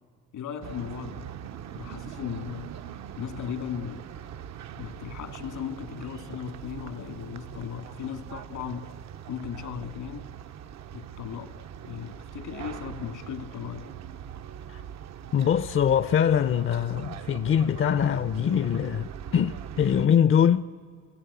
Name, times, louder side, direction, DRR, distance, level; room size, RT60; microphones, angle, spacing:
voice 1, 0.3-1.3 1.7-2.7 3.2-4.1 4.7-9.0 9.3-10.3 10.9-13.9, left 9 dB, 80° left, 2.0 m, -37 dB
sound 1, 0.6-20.1, right 9 dB, 65° right, 0.7 m, -41 dB
voice 2, 15.3-20.7, left 8 dB, 45° left, 0.6 m, -23 dB
29.0 x 20.0 x 8.1 m
cardioid pair, 90°, 30 cm